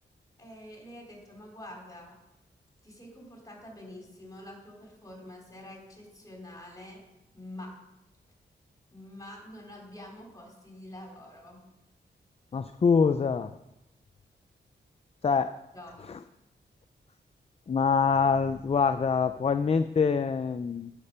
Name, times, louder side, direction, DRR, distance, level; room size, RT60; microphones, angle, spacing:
voice 1, 0.4-2.2 2.8-7.0 7.3-7.8 8.9-11.6 15.7-16.1, left 1 dB, 20° left, 0 dB, 3.7 m, -46 dB
voice 2, 12.5-13.5 15.2-15.6 17.7-20.9, left 5 dB, 35° left, 10 dB, 0.4 m, -25 dB
11.0 x 7.4 x 5.6 m, 0.90 s
wide cardioid pair, 95°, 18 cm